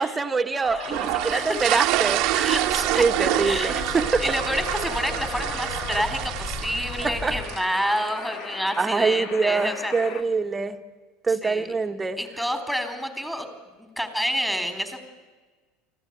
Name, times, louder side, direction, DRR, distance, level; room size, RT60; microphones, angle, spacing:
voice 1, 0.0-2.6 3.0-4.2 7.0-7.4 8.8-10.8 11.2-12.2, right 4 dB, 20° right, 6 dB, 1.7 m, -24 dB
sound 1, 0.6-10.2, left 6 dB, 50° left, 1.7 m, -38 dB
sound 2, 0.8-8.1, right 16 dB, 60° right, 1.3 m, -27 dB
sound 3, 1.0-7.4, left 3 dB, 35° left, 2.8 m, -37 dB
voice 2, 1.3-1.6 2.4-3.0 3.4-9.9 11.3-11.7 12.2-13.5 13.8-15.0, equal, 5° left, 7 dB, 4.0 m, -29 dB
24.5 x 15.5 x 9.5 m, 1.4 s
hypercardioid pair, 80°, 0 cm